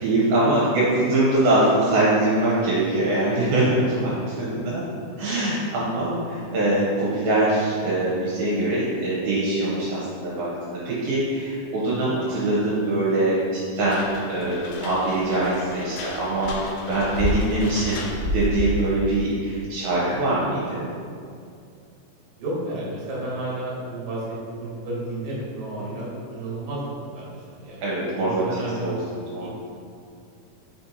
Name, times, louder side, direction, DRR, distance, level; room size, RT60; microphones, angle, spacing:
voice 1, 0.0-4.8 5.2-13.4 13.8-16.6 16.9-18.0 18.3-20.9 25.8-25.9 27.8-28.5 28.8-29.5, right 2 dB, 75° right, -7 dB, 2.5 m, -23 dB
sound 1, 13.8-19.0, left 1 dB, 85° left, 2.5 m, -30 dB
voice 2, 20.4-20.8 22.4-27.3 27.6-29.5, right 1 dB, 55° right, -5 dB, 2.4 m, -32 dB
5.7 x 4.3 x 4.0 m, 2.3 s
omnidirectional pair, 4.4 m